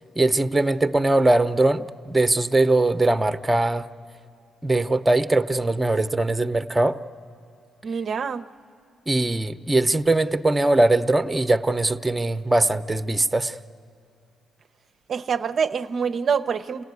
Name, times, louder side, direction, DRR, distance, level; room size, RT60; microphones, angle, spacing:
voice 1, 0.2-3.9 4.6-7.0 9.1-13.5, right 2 dB, 15° right, 10 dB, 0.6 m, -21 dB
voice 2, 7.8-8.4 15.1-16.8, right 6 dB, 50° right, 9 dB, 0.5 m, -25 dB
27.0 x 17.5 x 9.5 m, 2.4 s
cardioid pair, 90°, 0 cm